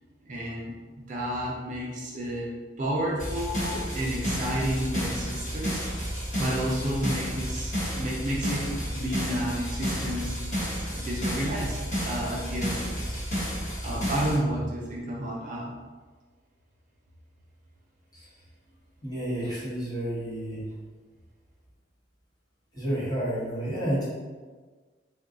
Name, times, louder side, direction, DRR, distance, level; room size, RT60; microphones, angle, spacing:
voice 1, 0.2-2.5 2.8-5.9 6.4-10.4 10.9-13.1 13.8-15.8, right 1 dB, 45° right, -3 dB, 0.5 m, -31 dB
sound 1, 3.2-14.4, equal, 45° left, 1.2 m, -31 dB
voice 2, 19.0-20.6 22.7-24.1, right 1 dB, 20° left, -8 dB, 1.1 m, -30 dB
2.5 x 2.3 x 3.6 m, 1.4 s
head